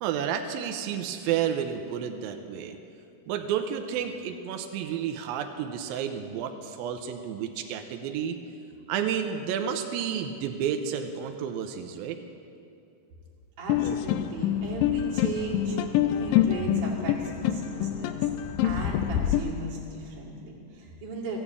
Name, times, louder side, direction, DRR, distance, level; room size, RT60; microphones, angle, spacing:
voice 1, 0.0-2.8 3.3-8.4 8.9-12.2, right 8 dB, 80° right, 5 dB, 2.4 m, -31 dB
voice 2, 13.6-15.8 16.1-21.4, right 3 dB, 55° right, -4 dB, 3.8 m, -37 dB
sound 1, 13.7-19.4, left 11 dB, 80° left, 2.1 m, -26 dB
14.5 x 9.2 x 8.4 m, 2.5 s
omnidirectional pair, 4.2 m